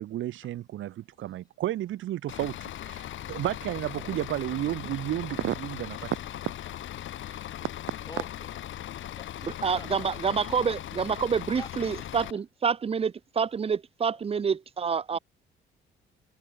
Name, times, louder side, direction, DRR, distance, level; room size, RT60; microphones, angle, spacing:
voice 1, 0.0-6.5 7.3-7.4, right 13 dB, 80° right, 2.5 m, -32 dB
Bus / Idling, 2.3-12.3, left 12 dB, 75° left, 2.7 m, -39 dB
voice 2, 8.1-8.5 9.1-10.2 11.6-11.7 15.1-15.2, left 3 dB, 20° left, 2.3 m, -45 dB
voice 3, 9.4-15.2, right 6 dB, 30° right, 0.5 m, -28 dB
cardioid pair, 90°, 20 cm